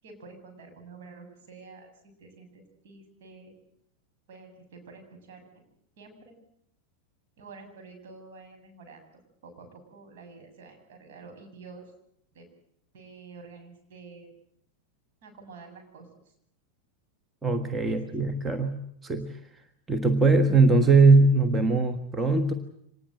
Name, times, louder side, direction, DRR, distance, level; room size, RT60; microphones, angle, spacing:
voice 1, 0.0-3.5 4.3-5.4 6.0-6.4 7.4-9.0 9.4-11.9 12.3-12.5 12.9-14.3 15.2-16.3 17.8-18.0, right 4 dB, 55° right, 4 dB, 7.6 m, -48 dB
voice 2, 17.4-19.4 19.9-22.5, right 3 dB, 10° right, 6 dB, 1.6 m, -21 dB
25.5 x 19.5 x 8.1 m, 0.72 s
figure-of-eight pair, 90°, 0 cm